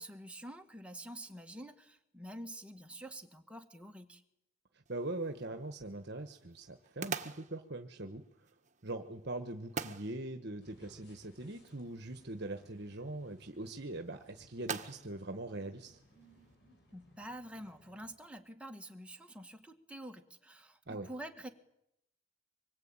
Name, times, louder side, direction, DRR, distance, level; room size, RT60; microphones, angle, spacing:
voice 1, 0.0-4.2 16.9-21.5, right 1 dB, 5° right, 4 dB, 1.9 m, -47 dB
voice 2, 4.7-8.5 8.8-16.0 20.9-21.1, right 2 dB, 55° right, 6 dB, 1.4 m, -42 dB
sound 1, 4.9-16.6, right 5 dB, 35° right, 1.6 m, -47 dB
sound 2, 10.6-18.1, equal, 55° left, 7.2 m, -64 dB
25.5 x 22.0 x 8.9 m, 0.81 s
head